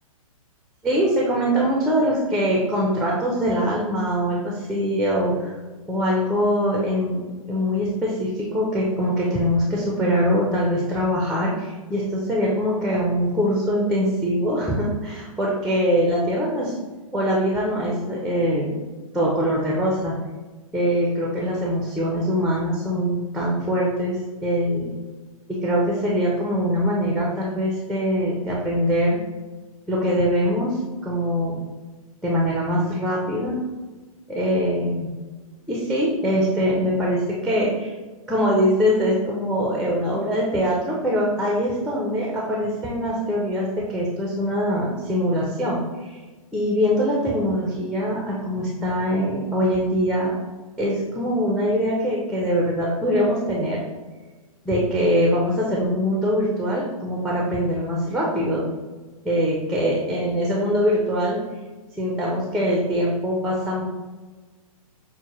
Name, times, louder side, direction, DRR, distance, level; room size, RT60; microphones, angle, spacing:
voice 1, 0.8-5.6 5.9-16.7 17.1-18.8 19.1-20.2 20.7-24.9 25.5-29.2 29.9-31.6 32.2-33.6 34.3-35.1 35.7-37.9 38.3-46.2 46.5-50.3 50.8-53.8 54.7-58.6 59.2-61.4 62.0-63.8, equal, ahead, -3 dB, 0.5 m, -23 dB
6.1 x 2.1 x 2.9 m, 1.3 s
hypercardioid pair, 130°, 19 cm